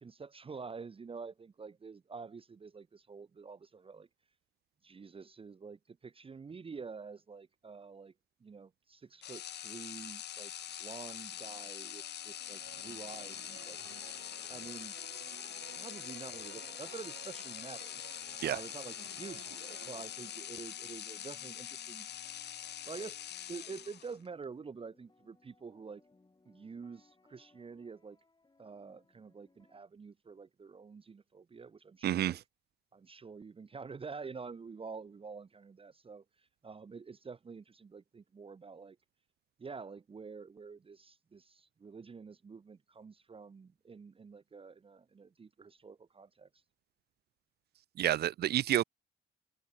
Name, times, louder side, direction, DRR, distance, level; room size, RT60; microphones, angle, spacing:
voice 1, 0.0-4.1 4.8-8.1 8.4-10.5 10.8-13.8 14.5-14.9 15.8-18.0 18.4-22.1 22.8-23.2 23.5-26.0 26.5-28.2 28.6-32.4 32.9-39.0 39.6-46.6, right 5 dB, 30° right, 0.8 m, -48 dB
sound 1, 9.2-24.3, left 11 dB, 60° left, 0.7 m, -44 dB
sound 2, 11.3-29.8, left 3 dB, 20° left, 7.0 m, -68 dB
sound 3, 12.6-21.1, right 15 dB, 90° right, 3.4 m, -55 dB
voice 2, 32.0-32.4 48.0-48.8, right 12 dB, 55° right, 0.4 m, -29 dB
cardioid pair, 90°, 20 cm